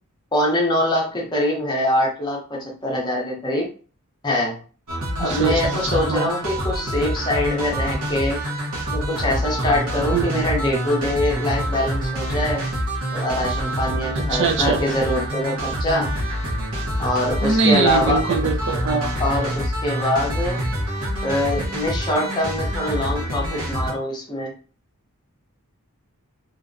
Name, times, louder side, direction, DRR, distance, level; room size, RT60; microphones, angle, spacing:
voice 1, 0.3-3.7 4.2-4.6 5.2-8.4 8.9-12.7 13.1-16.1 17.0-18.2 19.2-20.6 21.2-24.5, left 1 dB, 20° left, -2 dB, 0.6 m, -23 dB
sound 1, 4.9-23.9, equal, 75° right, 0.9 m, -26 dB
voice 2, 5.2-6.3 10.1-10.7 14.1-14.8 17.4-19.1, right 4 dB, 50° right, 4 dB, 0.3 m, -22 dB
2.5 x 2.1 x 2.5 m, 0.39 s
head